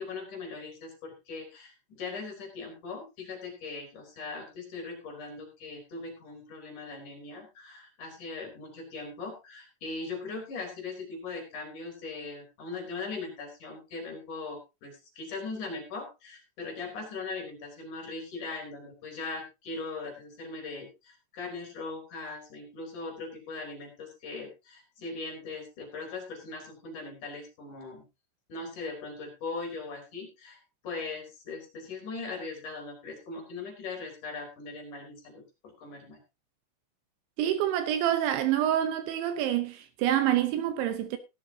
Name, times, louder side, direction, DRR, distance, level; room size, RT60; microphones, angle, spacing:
voice 1, 0.0-28.1 28.5-36.2, left 3 dB, 45° left, 4.3 m, -40 dB
voice 2, 37.4-41.2, right 11 dB, 75° right, 3.1 m, -27 dB
15.5 x 12.0 x 2.8 m
omnidirectional pair, 5.6 m